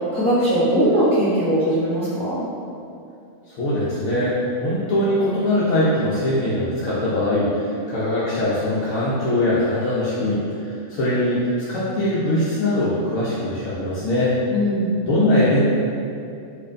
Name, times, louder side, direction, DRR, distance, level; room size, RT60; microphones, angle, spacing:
voice 1, 0.1-2.4 14.5-15.0, equal, 10° left, -10 dB, 0.4 m, -20 dB
voice 2, 3.5-10.4 10.9-14.3 15.0-15.6, left 1 dB, 80° left, -10 dB, 1.0 m, -21 dB
4.4 x 2.4 x 2.5 m, 2.6 s
omnidirectional pair, 1.4 m